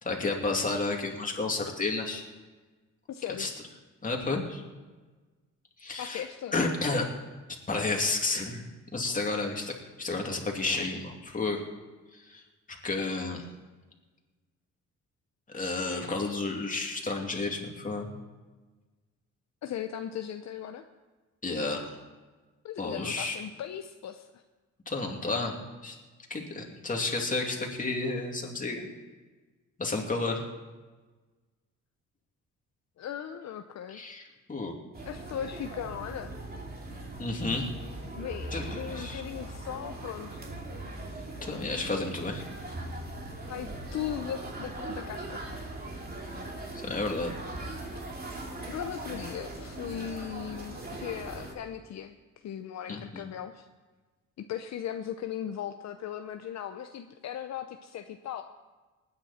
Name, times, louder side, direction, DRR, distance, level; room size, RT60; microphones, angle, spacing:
voice 1, 0.0-2.2 3.4-3.5 4.0-4.6 5.8-6.2 6.5-7.1 7.7-8.6 8.9-9.7 10.0-11.6 12.1-12.4 12.8-13.4 15.5-18.1 21.4-22.0 22.8-23.4 24.9-25.9 26.3-28.9 29.8-30.5 33.9-34.7 37.2-37.7 38.5-39.2 41.4-42.4 46.8-47.3 52.9-53.2, left 3 dB, 25° left, 1 dB, 2.7 m, -31 dB
voice 2, 3.1-3.5 6.0-6.5 19.6-20.8 22.6-24.4 33.0-34.0 35.1-36.3 38.1-40.4 43.5-45.4 48.7-53.7 54.4-58.4, left 9 dB, 60° left, 7 dB, 0.8 m, -38 dB
sound 1, 34.9-51.5, right 2 dB, 30° right, 2.8 m, -40 dB
19.5 x 9.7 x 4.3 m, 1.3 s
cardioid pair, 90°, 30 cm